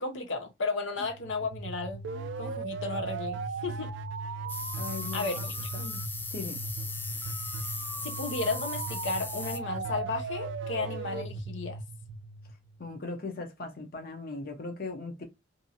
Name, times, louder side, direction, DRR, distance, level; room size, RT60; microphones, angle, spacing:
voice 1, 0.0-2.0 2.4-3.9 5.1-5.5 7.6-7.7 8.0-11.8, left 3 dB, 90° left, 0.8 m, -34 dB
sound 1, 1.0-12.9, right 3 dB, 75° right, 0.4 m, -37 dB
sound 2, 4.5-9.6, left 3 dB, 10° left, 0.3 m, -38 dB
voice 2, 4.8-5.3 5.7-6.0 6.3-6.6 12.8-15.2, left 3 dB, 55° left, 0.7 m, -38 dB
2.7 x 2.5 x 2.6 m
head